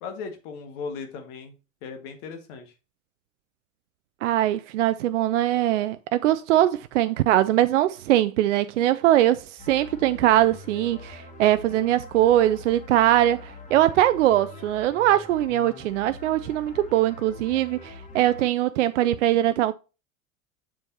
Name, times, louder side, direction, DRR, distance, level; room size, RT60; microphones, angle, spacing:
voice 1, 0.0-2.7, left 5 dB, 45° left, 1.8 m, -37 dB
voice 2, 4.2-19.7, right 13 dB, 60° right, 0.5 m, -22 dB
sound 1, 9.6-18.5, left 3 dB, 15° left, 1.6 m, -44 dB
7.4 x 6.9 x 2.8 m
figure-of-eight pair, 80°, 42 cm